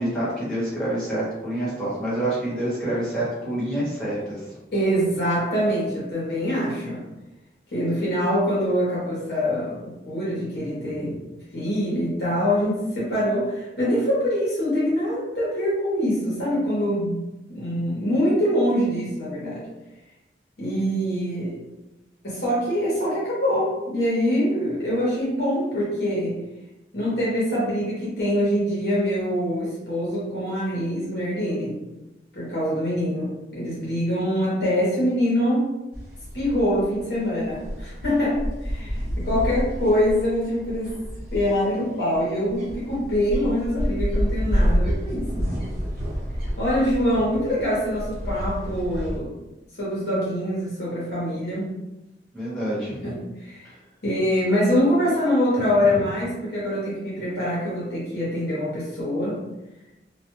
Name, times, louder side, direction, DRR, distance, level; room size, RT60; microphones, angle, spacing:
voice 1, 0.0-4.6 52.3-53.0, right 1 dB, 5° left, -10 dB, 1.0 m, -27 dB
voice 2, 4.7-7.0 7.7-11.2 11.5-19.6 20.6-21.6 22.2-26.4 26.9-31.8 32.3-35.7 36.3-41.0 41.3-45.6 46.6-49.3 49.8-51.7 52.6-53.6 54.0-59.4, equal, 60° left, -7 dB, 0.9 m, -24 dB
sound 1, 35.9-49.2, equal, 60° right, 1.0 m, -29 dB
2.3 x 2.2 x 3.0 m, 1.0 s
head